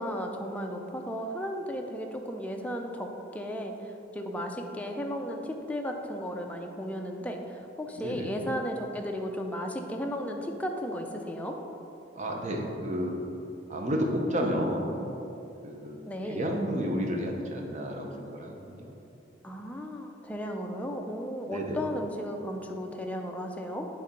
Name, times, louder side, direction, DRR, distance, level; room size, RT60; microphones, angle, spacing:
voice 1, 0.0-3.7 4.1-11.6 16.1-16.5 19.4-23.9, equal, 10° left, 2 dB, 0.5 m, -35 dB
voice 2, 8.0-8.3 12.2-13.1 13.7-14.9 15.6-18.9 21.5-21.8, equal, 40° right, 1 dB, 0.8 m, -31 dB
8.4 x 3.4 x 5.1 m, 2.8 s
head